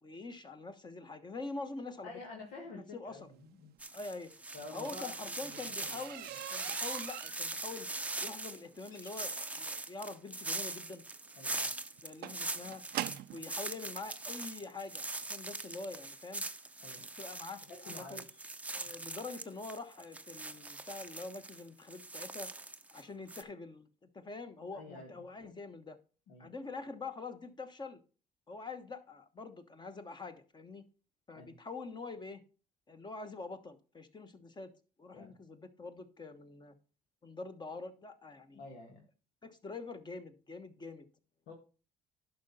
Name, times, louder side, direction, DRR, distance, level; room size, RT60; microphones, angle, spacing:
voice 1, 0.0-2.1 2.9-3.2 3.9-4.3 4.7-7.9 8.2-11.0 12.0-12.8 13.3-16.4 17.2-18.3 18.7-22.5 22.9-23.9 24.1-26.0 26.4-28.0 28.5-30.8 31.3-32.4 32.9-34.7 35.0-36.7 37.2-38.6 39.4-41.0, left 3 dB, 25° left, 9 dB, 1.1 m, -45 dB
voice 2, 2.0-3.7 4.5-5.7 11.4-11.7 13.1-13.2 16.8-17.1 17.7-18.4 24.7-25.1 26.3-26.5 31.4-31.6 35.1-35.3 38.5-39.1 41.5-41.6, left 2 dB, 85° left, 0 dB, 1.9 m, -49 dB
sound 1, 3.8-23.0 23.3-23.4, right 2 dB, 10° right, 0.6 m, -42 dB
sound 2, 4.6-13.5 14.4-14.5 15.0-15.2 15.5-15.6 15.9-16.0, right 15 dB, 70° right, 0.4 m, -44 dB
sound 3, 5.6-6.6 8.9-9.8, left 3 dB, 70° left, 4.7 m, -60 dB
11.0 x 5.5 x 4.1 m, 0.35 s
cardioid pair, 110°, 17 cm